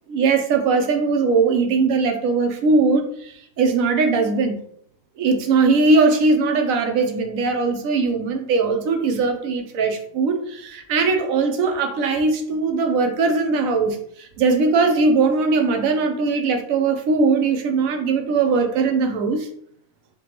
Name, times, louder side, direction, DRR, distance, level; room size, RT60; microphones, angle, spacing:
voice 1, 0.1-4.6 5.2-19.5, right 4 dB, 80° right, 5 dB, 1.0 m, -20 dB
4.9 x 2.2 x 2.9 m, 0.64 s
omnidirectional pair, 1.4 m